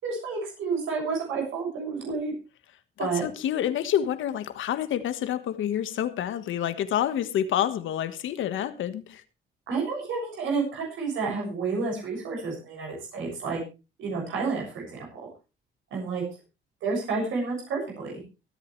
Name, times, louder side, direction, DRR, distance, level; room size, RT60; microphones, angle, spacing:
voice 1, 0.0-2.3 3.0-3.2 9.7-13.6 14.0-14.8 15.1-15.3 15.9-16.2 16.8-18.2, right 4 dB, 80° right, 6.8 m, -30 dB
voice 2, 3.0-9.2, left 10 dB, 80° left, 1.5 m, -28 dB
24.0 x 8.6 x 3.2 m
cardioid pair, 90°, 20 cm